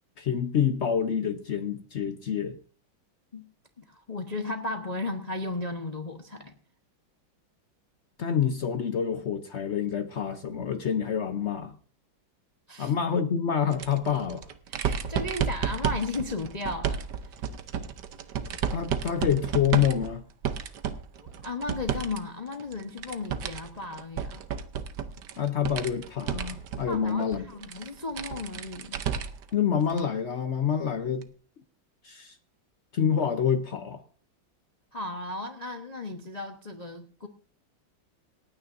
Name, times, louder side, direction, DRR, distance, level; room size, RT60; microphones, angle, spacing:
voice 1, 0.2-2.6 8.2-11.7 12.8-14.5 18.7-20.2 25.4-27.4 29.5-31.3 32.0-32.4 32.9-34.0, left 8 dB, 70° left, 0.6 m, -27 dB
voice 2, 3.8-6.5 12.7-12.9 14.7-17.0 21.2-24.4 26.9-29.0 34.9-37.3, left 2 dB, 30° left, 0.8 m, -35 dB
sound 1, 13.7-22.2 22.5-29.5 29.9-30.0 31.2-31.3, right 7 dB, 65° right, 1.4 m, -33 dB
28.0 x 9.4 x 2.6 m
omnidirectional pair, 2.1 m